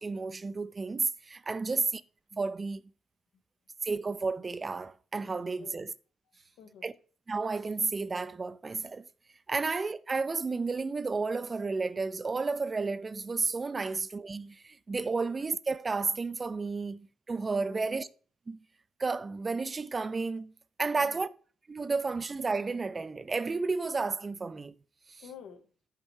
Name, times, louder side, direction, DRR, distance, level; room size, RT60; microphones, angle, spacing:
voice 1, 0.0-2.0 2.3-2.8 3.8-5.9 6.8-6.9 7.3-9.1 9.5-18.1 18.5-18.6 19.0-20.5 20.8-21.3 21.7-24.8 25.1-25.2, right 4 dB, 30° right, 0.3 m, -32 dB
voice 2, 6.3-6.9 17.7-18.1 20.9-21.3 25.2-25.7, left 7 dB, 85° left, 1.0 m, -50 dB
5.7 x 5.4 x 3.1 m
cardioid pair, 90°, 0 cm